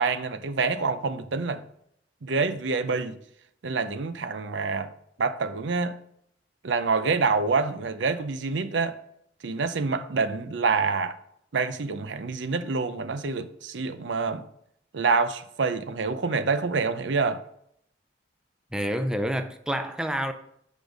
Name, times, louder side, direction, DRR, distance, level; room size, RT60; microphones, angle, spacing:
voice 1, 0.0-1.6 2.2-3.2 3.6-4.9 5.2-6.0 6.6-9.0 9.4-11.2 11.5-14.4 14.9-17.4, right 4 dB, 80° right, 0.6 m, -26 dB
voice 2, 18.7-20.3, equal, 5° right, 0.5 m, -28 dB
8.3 x 5.2 x 5.0 m
head